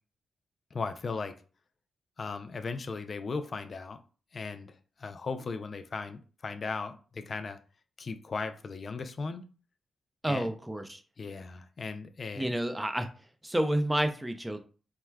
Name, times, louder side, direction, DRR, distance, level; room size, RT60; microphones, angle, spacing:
voice 1, 0.7-1.4 2.2-4.0 4.3-7.6 8.0-9.4 10.3-10.5 11.2-12.5, left 4 dB, 50° left, 9 dB, 0.4 m, -37 dB
voice 2, 10.2-11.0 12.3-13.1 13.4-14.6, right 1 dB, 10° right, 7 dB, 0.5 m, -29 dB
4.6 x 2.1 x 2.2 m, 0.37 s
cardioid pair, 65°, 0 cm